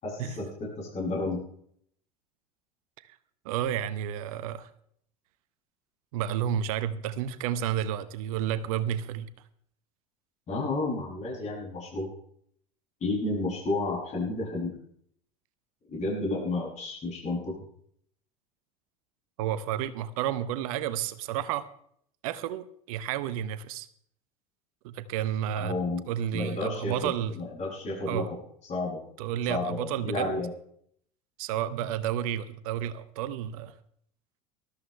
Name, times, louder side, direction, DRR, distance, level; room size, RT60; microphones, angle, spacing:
voice 1, 0.0-1.4 10.5-12.1 13.0-14.7 15.9-17.5 25.5-26.0 26.3-28.2 28.7-29.0 29.5-30.5, left 2 dB, 35° left, -4 dB, 7.7 m, -31 dB
voice 2, 3.4-4.7 6.1-9.3 19.4-21.7 22.2-23.9 24.8-25.8 26.1-27.3 28.1-28.3 29.2-30.3 31.4-33.7, right 10 dB, 65° right, 15 dB, 0.9 m, -31 dB
19.5 x 13.0 x 3.4 m, 0.66 s
hypercardioid pair, 75°, 20 cm